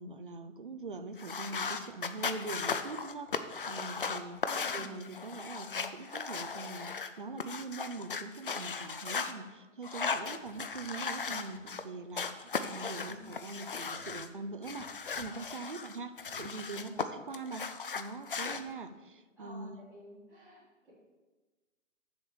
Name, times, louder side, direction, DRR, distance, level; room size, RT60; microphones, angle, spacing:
voice 1, 0.0-4.4 4.7-17.6 17.9-19.8, right 3 dB, 45° right, 10 dB, 0.5 m, -43 dB
sound 1, 1.2-9.3 9.8-11.8 12.1-14.3 14.6-17.1 17.3-18.6, left 5 dB, 45° left, 0.5 m, -37 dB
voice 2, 4.4-5.0 13.0-13.3 16.6-17.0 19.4-20.9, left 1 dB, ahead, -19 dB, 2.0 m, -52 dB
7.1 x 5.0 x 7.0 m, 1.2 s
hypercardioid pair, 180°, 38 cm